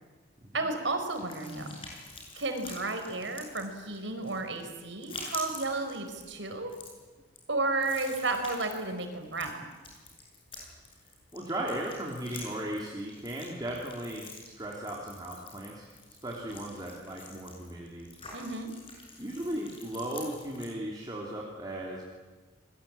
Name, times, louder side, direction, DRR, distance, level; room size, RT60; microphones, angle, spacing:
voice 1, 0.5-1.8 2.4-6.7 7.5-9.5 18.3-18.7, right 3 dB, 80° right, 6 dB, 4.6 m, -32 dB
sound 1, 1.1-20.7, left 3 dB, 30° left, 7.8 m, -47 dB
voice 2, 11.3-15.9 16.2-18.1 19.2-22.1, right 1 dB, 20° right, -3 dB, 3.5 m, -37 dB
29.0 x 21.5 x 8.8 m, 1.3 s
head